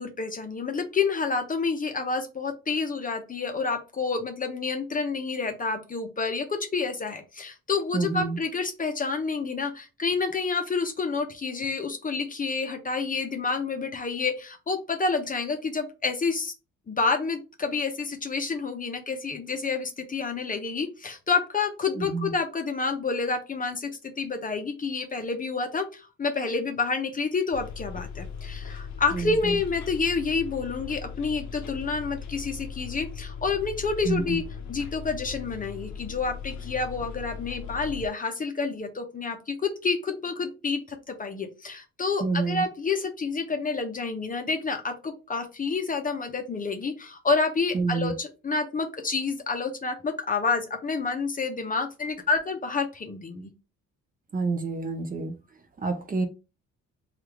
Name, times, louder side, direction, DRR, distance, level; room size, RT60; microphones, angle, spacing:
voice 1, 0.0-16.5 16.9-34.4 34.7-53.5, left 4 dB, 30° left, 0.6 m, -29 dB
voice 2, 7.9-8.4 22.0-22.3 29.1-29.6 34.0-34.4 42.2-42.6 47.7-48.1 54.3-55.4 55.8-56.3, right 4 dB, 30° right, 0.6 m, -28 dB
Bus, 27.5-38.1, left 6 dB, 70° left, 0.6 m, -38 dB
3.3 x 2.4 x 2.9 m
cardioid pair, 90°, 30 cm